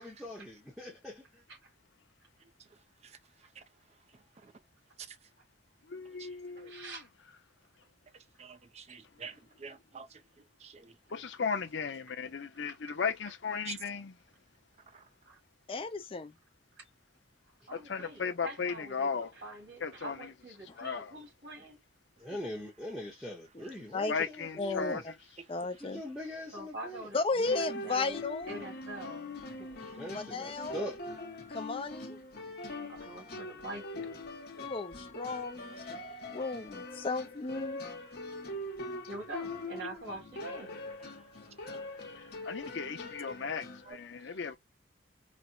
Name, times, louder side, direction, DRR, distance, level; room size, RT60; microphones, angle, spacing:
voice 1, 0.0-1.4 22.2-25.1 25.8-27.1 30.0-31.0, left 1 dB, ahead, 0.8 m, -42 dB
voice 2, 2.4-3.6 4.1-4.5 5.0-5.3 6.2-6.7 8.4-10.2 10.6-11.2 13.6-13.8 14.9-15.1 22.3-22.4 23.6-23.7 29.8-30.0 39.8-39.9 41.2-41.3 41.5-42.1 42.3-42.8 43.3-43.4 43.8-44.0 44.3-44.4, right 6 dB, 35° right, 0.5 m, -50 dB
voice 3, 5.9-6.9 11.1-14.1 17.7-19.3 19.8-20.1 20.8-21.1 24.1-25.0 42.4-44.6, left 5 dB, 80° left, 0.6 m, -36 dB
voice 4, 6.6-7.1 12.6-12.9 15.2-15.4 17.7-21.8 26.5-28.2 28.5-29.3 29.6-30.0 32.9-34.2 39.1-40.8, right 2 dB, 70° right, 1.7 m, -45 dB
voice 5, 15.7-16.3 23.9-24.1 24.6-25.0 25.5-26.0 27.1-28.6 30.1-30.8 31.5-32.2 34.6-36.0 36.3-37.8, left 3 dB, 30° left, 0.5 m, -34 dB
sound 1, 27.4-43.9, left 2 dB, 60° left, 0.9 m, -42 dB
4.2 x 2.1 x 2.3 m
head